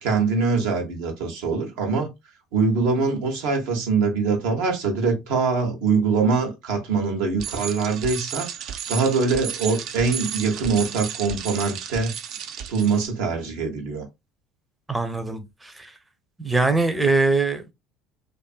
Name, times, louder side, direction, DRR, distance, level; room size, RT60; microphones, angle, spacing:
voice 1, 0.0-2.1 2.5-8.5 8.9-12.1 12.7-14.0, right 4 dB, 80° right, 0.8 m, -23 dB
Bicycle, 7.4-13.1, right 8 dB, 60° right, 0.4 m, -33 dB
voice 2, 14.9-15.9 16.4-17.6, right 3 dB, 10° right, 0.5 m, -22 dB
2.6 x 2.5 x 2.3 m
supercardioid pair, 85°, 0 cm